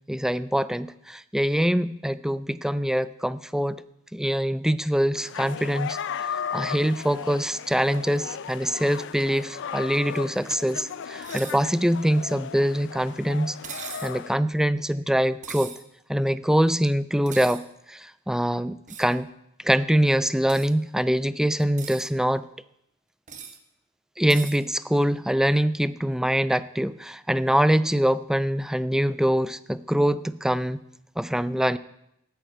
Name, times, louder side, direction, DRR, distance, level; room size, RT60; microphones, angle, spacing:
voice 1, 0.1-3.8 4.1-13.6 14.0-15.7 16.1-19.3 19.6-22.4 24.2-30.8 31.2-31.8, equal, 5° right, 16 dB, 0.4 m, -24 dB
sound 1, 5.1-14.3, left 7 dB, 60° left, 0.5 m, -36 dB
sound 2, 11.2-11.6 13.6-14.2 15.4-15.8 17.3-17.6 18.9-19.1 20.5-20.7 21.6-22.1 23.3-23.6 24.3-24.6, right 7 dB, 40° right, 1.3 m, -39 dB
10.0 x 9.2 x 9.1 m, 0.79 s
head